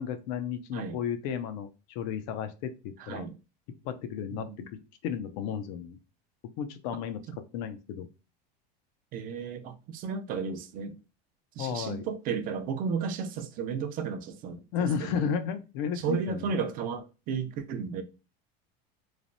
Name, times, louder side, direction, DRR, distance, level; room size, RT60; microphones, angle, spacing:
voice 1, 0.0-3.2 3.8-6.0 6.6-7.2 7.5-8.1 11.6-12.0 14.7-16.5, left 8 dB, 65° left, 0.5 m, -33 dB
voice 2, 3.0-3.3 4.3-4.7 7.3-7.4 9.1-11.0 11.6-15.3 16.0-18.0, right 6 dB, 45° right, 0.4 m, -34 dB
3.1 x 2.0 x 2.5 m
supercardioid pair, 140°, 21 cm